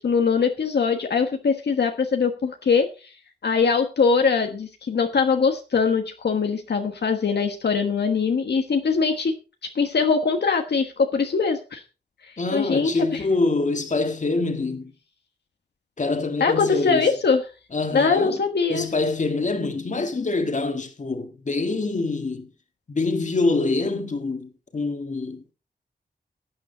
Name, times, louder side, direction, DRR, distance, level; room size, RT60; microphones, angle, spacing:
voice 1, 0.0-3.1 3.4-9.3 9.7-11.8 12.5-13.2 16.4-17.4 17.9-18.9, left 5 dB, 70° left, 1.3 m, -22 dB
voice 2, 12.4-14.9 16.0-17.1 17.7-18.4 18.7-22.5 22.9-25.5, left 3 dB, 45° left, 1.8 m, -25 dB
15.0 x 9.0 x 3.9 m
wide cardioid pair, 95°, 18 cm